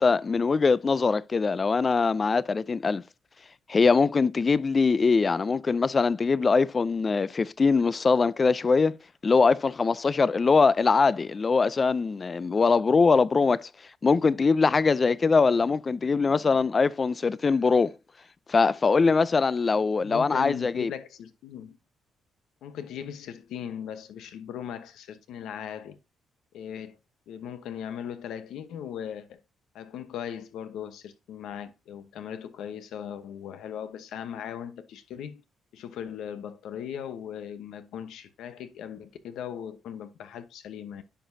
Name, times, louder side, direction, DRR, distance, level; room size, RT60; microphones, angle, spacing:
voice 1, 0.0-3.0 3.7-9.0 9.2-13.7 14.0-17.9 18.5-20.9, left 4 dB, 35° left, 0.4 m, -22 dB
voice 2, 19.7-21.8 22.6-26.0 26.5-27.0 27.3-29.4 29.7-35.4 35.7-41.0, left 9 dB, 80° left, 0.9 m, -38 dB
10.0 x 4.9 x 2.6 m
cardioid pair, 90°, 0 cm